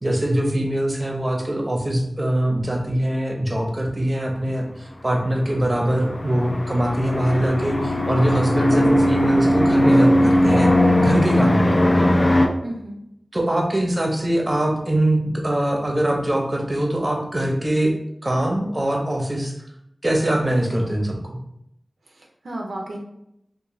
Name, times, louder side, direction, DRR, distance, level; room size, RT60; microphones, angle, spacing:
voice 1, 0.0-10.7 11.0-11.8 13.3-17.9 18.2-19.5 20.0-21.4, right 1 dB, 35° right, 1 dB, 0.6 m, -22 dB
sound 1, 5.1-12.5, left 1 dB, 45° left, 0.3 m, -19 dB
voice 2, 12.6-13.0 22.1-23.0, right 1 dB, 85° right, 0 dB, 0.4 m, -33 dB
2.5 x 2.1 x 3.0 m, 0.78 s
wide cardioid pair, 45°, 0 cm